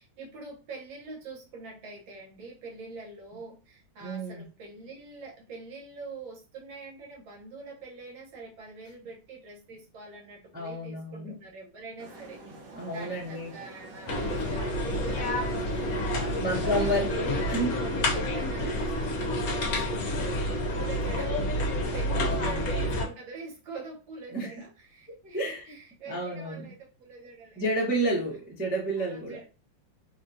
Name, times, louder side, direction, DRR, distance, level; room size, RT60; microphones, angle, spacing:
voice 1, 0.0-12.4 12.9-21.4 21.7-27.6 29.0-29.4, right 3 dB, 80° right, 1.9 m, -45 dB
voice 2, 4.0-4.4 10.5-11.4 12.8-13.5 16.4-17.7 18.6-18.9 21.4-21.5 22.1-22.6 24.3-24.5 25.3-25.7 26.1-26.6 27.6-29.4, right 1 dB, 10° right, 0.5 m, -30 dB
sound 1, 12.0-17.0, right 2 dB, 65° right, 1.4 m, -47 dB
sound 2, 14.1-23.0, left 1 dB, 60° left, 1.1 m, -29 dB
3.6 x 2.4 x 2.6 m
omnidirectional pair, 2.1 m